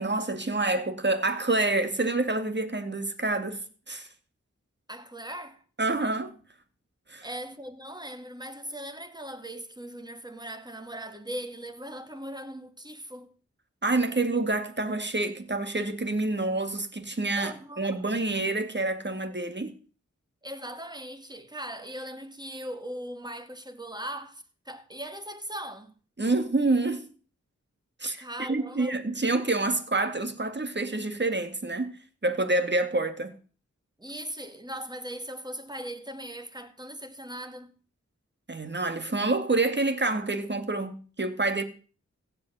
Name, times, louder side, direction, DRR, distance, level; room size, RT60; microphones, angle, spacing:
voice 1, 0.0-4.1 5.8-6.3 7.1-7.3 13.8-19.8 26.2-27.1 28.0-32.0 32.2-33.3 38.5-41.6, right 2 dB, 40° right, 2.0 m, -27 dB
voice 2, 4.9-5.6 7.2-13.3 17.3-18.0 20.4-25.9 28.2-29.0 34.0-37.7, right 1 dB, 15° right, 2.0 m, -39 dB
15.5 x 5.4 x 9.2 m
cardioid pair, 45°, 29 cm